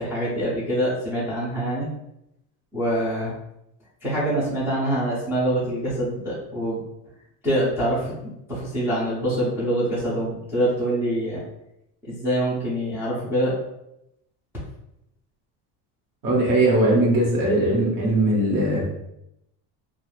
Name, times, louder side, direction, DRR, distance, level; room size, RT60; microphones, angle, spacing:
voice 1, 0.0-1.9 2.7-3.3 4.0-6.8 7.4-11.4 12.0-13.5, right 1 dB, 5° right, -11 dB, 0.4 m, -25 dB
voice 2, 16.2-18.9, right 1 dB, 60° right, -3 dB, 1.1 m, -20 dB
2.5 x 2.3 x 3.1 m, 0.84 s
cardioid pair, 180°, 44 cm